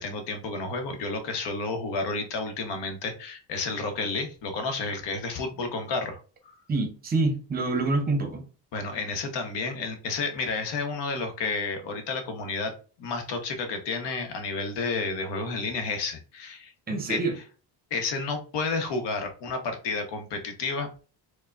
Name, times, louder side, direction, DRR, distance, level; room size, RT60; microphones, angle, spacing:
voice 1, 0.0-6.2 8.7-12.7 13.0-16.7 17.1-17.2 17.9-20.9, left 3 dB, 75° left, 0.9 m, -31 dB
voice 2, 6.7-8.4 16.9-17.3, right 3 dB, 20° right, 0.6 m, -26 dB
4.5 x 2.1 x 2.4 m
cardioid pair, 160°, 42 cm